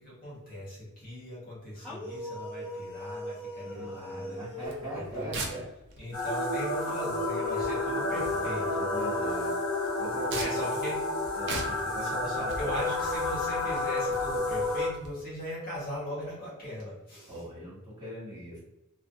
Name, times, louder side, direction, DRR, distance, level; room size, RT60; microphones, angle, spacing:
voice 1, 0.0-4.4 4.9-5.4 6.0-8.7 10.3-11.0 12.0-17.4, equal, 40° left, -6 dB, 1.0 m, -39 dB
sound 1, 1.8-5.5 6.8-10.5, equal, 5° left, 0.7 m, -42 dB
voice 2, 3.6-5.6 7.9-9.6 10.0-10.7 11.3-12.7 17.3-18.6, equal, 20° right, -10 dB, 1.2 m, -40 dB
sound 2, 4.6-15.1, right 3 dB, 55° right, 0.5 m, -43 dB
sound 3, 6.1-14.9, left 2 dB, 65° left, 0.8 m, -30 dB
2.3 x 2.1 x 2.6 m, 0.93 s
head